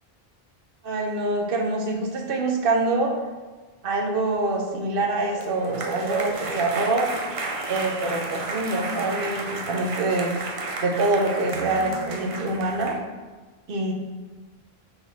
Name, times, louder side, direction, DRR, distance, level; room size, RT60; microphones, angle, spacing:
voice 1, 0.8-3.1 3.8-7.1 7.7-10.3 10.8-13.0 13.7-13.9, right 2 dB, 65° right, 1 dB, 1.0 m, -25 dB
sound 1, 5.1-13.0, right 3 dB, 40° right, 0.6 m, -32 dB
6.9 x 4.0 x 4.1 m, 1.3 s
omnidirectional pair, 1.0 m